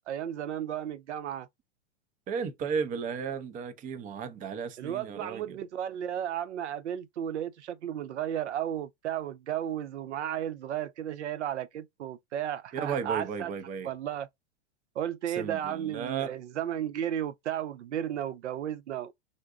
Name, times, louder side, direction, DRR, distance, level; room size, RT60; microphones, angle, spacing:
voice 1, 0.1-1.5 4.8-13.5 13.8-14.3 15.0-19.1, right 10 dB, 80° right, 0.5 m, -34 dB
voice 2, 2.3-5.6 12.7-13.9 15.3-16.3, right 6 dB, 25° right, 0.6 m, -34 dB
3.7 x 2.2 x 2.4 m
hypercardioid pair, 110°, 34 cm